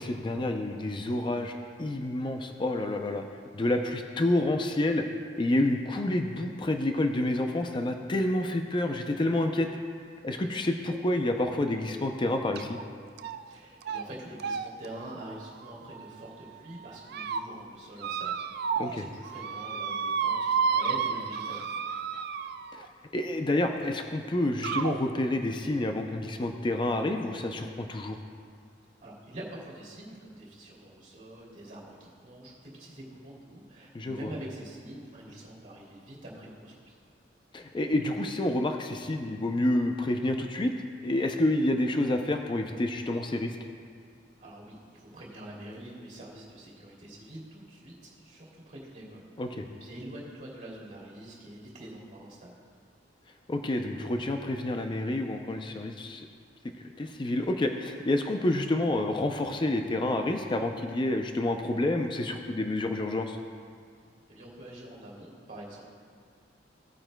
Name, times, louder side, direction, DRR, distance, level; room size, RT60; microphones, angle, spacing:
voice 1, 0.0-1.5 1.8-3.2 3.5-5.1 5.4-9.7 10.2-12.8 18.8-19.0 22.7-22.8 23.1-28.2 33.9-34.2 37.5-40.7 41.0-43.6 49.4-49.7 53.5-56.3 57.0-63.4, left 1 dB, 25° left, 5 dB, 0.4 m, -28 dB
sound 1, 12.6-12.8 13.2-13.5 13.8-14.0 14.4-16.3 16.8-17.4 18.0-19.0 19.2-22.9 23.8-23.9 24.6-25.0, right 6 dB, 60° right, 0.4 m, -32 dB
voice 2, 13.5-22.0 29.0-37.0 44.4-52.6 64.3-65.8, right 1 dB, 45° right, -3 dB, 2.7 m, -45 dB
17.5 x 8.9 x 2.2 m, 2.1 s
head